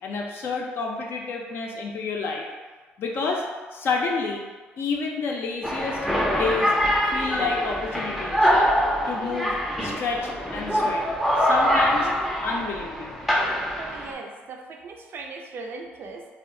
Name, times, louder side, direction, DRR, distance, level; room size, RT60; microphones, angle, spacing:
voice 1, 0.0-2.4 3.0-3.4 3.7-4.4 4.8-6.0 6.3-6.7 7.1-8.5 9.1-9.6 9.8-11.1 11.4-12.1 12.4-13.2, left 4 dB, 55° left, 0 dB, 0.5 m, -29 dB
sound 1, 5.6-14.1, equal, ahead, 0.5 m, -24 dB
voice 2, 13.8-16.3, right 4 dB, 55° right, 2 dB, 0.4 m, -38 dB
2.2 x 2.0 x 3.6 m, 1.3 s
supercardioid pair, 70°, 5 cm